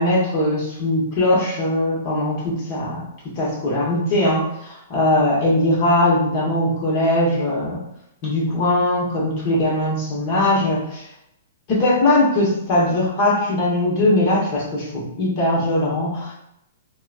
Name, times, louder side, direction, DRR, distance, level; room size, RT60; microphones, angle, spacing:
voice 1, 0.0-7.8 8.2-11.0 11.7-16.3, left 1 dB, 40° left, -4 dB, 1.1 m, -20 dB
3.8 x 2.3 x 2.4 m, 0.80 s
hypercardioid pair, 155°, 0 cm